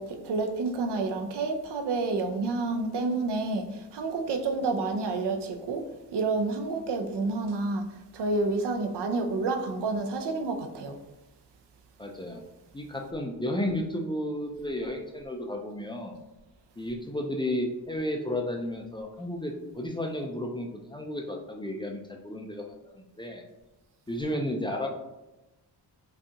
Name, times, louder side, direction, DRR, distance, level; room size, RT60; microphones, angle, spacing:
voice 1, 0.0-5.8 6.1-11.0, right 3 dB, 75° right, 6 dB, 0.6 m, -29 dB
voice 2, 12.0-12.4 12.7-16.2 16.8-23.4 24.1-24.9, left 1 dB, 15° left, 1 dB, 0.3 m, -33 dB
5.2 x 2.3 x 2.8 m, 1.0 s
wide cardioid pair, 130°, 42 cm